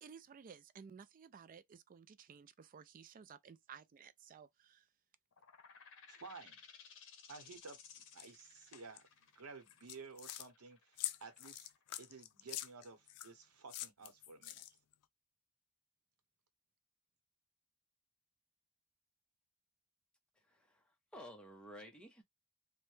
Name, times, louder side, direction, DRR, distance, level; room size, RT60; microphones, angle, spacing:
voice 1, 0.0-4.9, right 6 dB, 40° right, 0.3 m, -56 dB
sound 1, 5.3-12.7, left 6 dB, 60° left, 0.8 m, -60 dB
voice 2, 6.1-6.6 7.3-7.8 8.1-11.7 12.0-14.6, right 4 dB, 85° right, 0.9 m, -54 dB
sound 2, 8.2-8.3 8.7-9.0 9.7-10.5 11.0-13.3 13.7-14.9, left 14 dB, 85° left, 0.4 m, -45 dB
voice 3, 20.4-22.2, equal, 5° left, 0.8 m, -54 dB
3.1 x 2.1 x 3.1 m
head